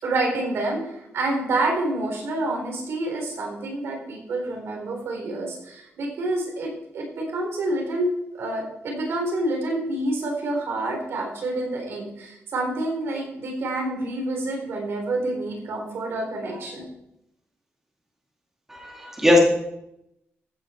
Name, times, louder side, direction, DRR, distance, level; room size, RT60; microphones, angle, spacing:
voice 1, 0.0-16.8, right 2 dB, 65° right, 1 dB, 4.1 m, -28 dB
voice 2, 18.7-19.4, left 2 dB, 10° right, -2 dB, 2.6 m, -19 dB
14.5 x 9.5 x 4.5 m, 0.83 s
wide cardioid pair, 145°, 5 cm